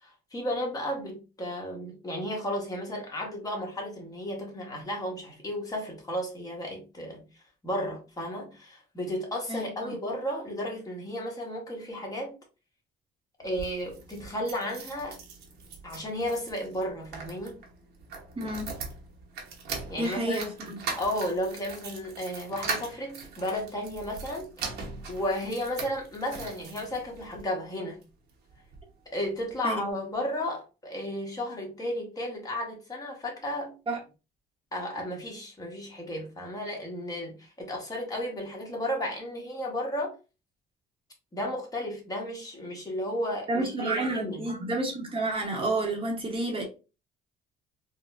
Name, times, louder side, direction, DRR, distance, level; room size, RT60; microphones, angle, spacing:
voice 1, 0.0-7.2 7.6-12.3 13.4-15.2 15.8-17.6 19.9-20.4 21.0-24.5 25.1-28.0 29.1-33.7 34.7-40.2 41.3-44.5, left 1 dB, 20° left, 1.2 m, -33 dB
voice 2, 9.5-10.0 18.4-18.7 20.0-20.8 29.6-29.8 33.9-34.0 43.5-46.6, right 2 dB, 30° right, 0.9 m, -30 dB
sound 1, 13.4-27.4 28.0-28.9 29.2-29.3 29.5-29.6, right 4 dB, 75° right, 1.0 m, -40 dB
4.0 x 2.1 x 2.4 m
cardioid pair, 110°, 17 cm